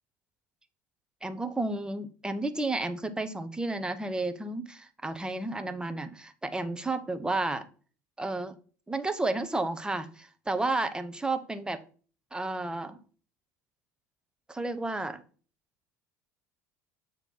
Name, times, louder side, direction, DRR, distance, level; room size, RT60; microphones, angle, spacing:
voice 1, 1.2-7.6 8.2-8.5 8.9-11.8 12.3-13.0 14.5-15.2, right 2 dB, 10° right, 8 dB, 0.8 m, -32 dB
7.1 x 3.0 x 5.5 m, 0.41 s
figure-of-eight pair, 70°, 9 cm